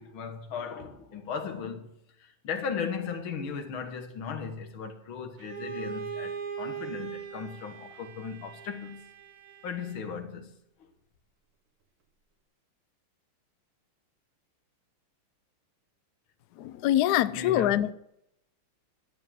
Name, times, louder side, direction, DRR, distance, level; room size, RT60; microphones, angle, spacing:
voice 1, 0.0-1.9 2.2-9.0 9.6-10.9 17.3-17.9, left 6 dB, 70° left, 2.2 m, -37 dB
Bowed string instrument, 5.4-10.2, right 7 dB, 85° right, 2.4 m, -40 dB
voice 2, 16.6-17.9, left 13 dB, 90° left, 0.8 m, -24 dB
12.0 x 7.4 x 7.5 m
omnidirectional pair, 2.4 m